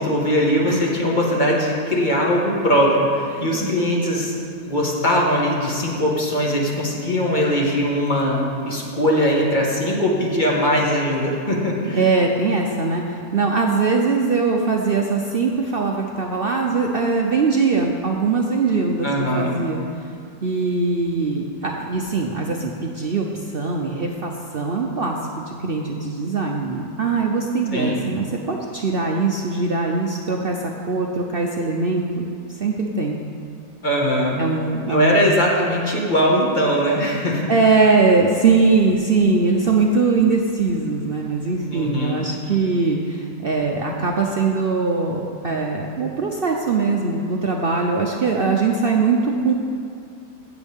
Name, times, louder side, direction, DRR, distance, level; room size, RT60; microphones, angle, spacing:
voice 1, 0.0-4.4 4.7-12.0 19.0-19.6 27.7-28.1 33.8-34.4 34.9-37.5 41.7-42.3, equal, 30° left, -3 dB, 1.6 m, -20 dB
voice 2, 3.3-3.7 11.9-19.1 19.3-19.8 20.4-32.3 32.6-33.2 34.4-35.3 37.5-49.5, right 4 dB, 65° right, 1 dB, 0.5 m, -21 dB
16.5 x 7.2 x 3.5 m, 2.4 s
omnidirectional pair, 1.8 m